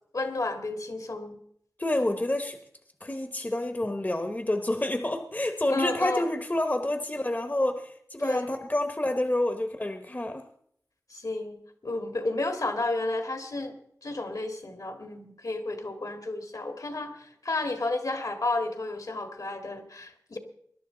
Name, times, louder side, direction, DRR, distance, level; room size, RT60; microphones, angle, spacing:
voice 1, 0.1-1.4 5.7-6.3 8.2-8.5 11.1-13.7 14.0-20.4, left 2 dB, 70° left, 1.9 m, -32 dB
voice 2, 1.8-2.6 3.0-10.5, left 1 dB, 25° left, 1.0 m, -28 dB
21.0 x 11.5 x 3.9 m
wide cardioid pair, 45°, 6 cm